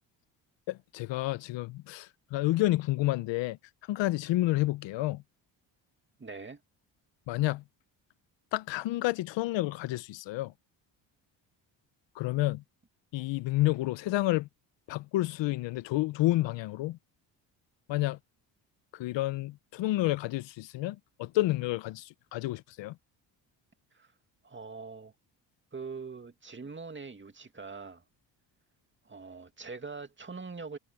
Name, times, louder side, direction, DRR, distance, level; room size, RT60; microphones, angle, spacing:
voice 1, 0.7-3.6 3.9-5.2 7.3-7.6 8.5-10.5 12.1-12.6 13.1-14.5 14.9-17.0 17.9-18.2 18.9-23.0, left 17 dB, 75° left, 0.9 m, -30 dB
voice 2, 6.2-6.6 23.9-24.1 24.4-25.1 25.7-28.0 29.0-30.8, right 4 dB, 25° right, 2.5 m, -43 dB
supercardioid pair, 70°, 44 cm